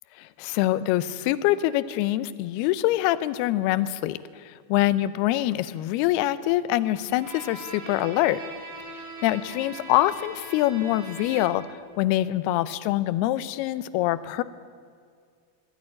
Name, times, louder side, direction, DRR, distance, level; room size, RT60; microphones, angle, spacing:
voice 1, 0.2-8.4 9.2-11.6 12.0-14.4, left 15 dB, 80° left, 14 dB, 2.6 m, -25 dB
Bowed string instrument, 7.1-11.8, right 2 dB, 50° right, 5.4 m, -41 dB
22.0 x 13.0 x 10.0 m, 2.2 s
omnidirectional pair, 4.8 m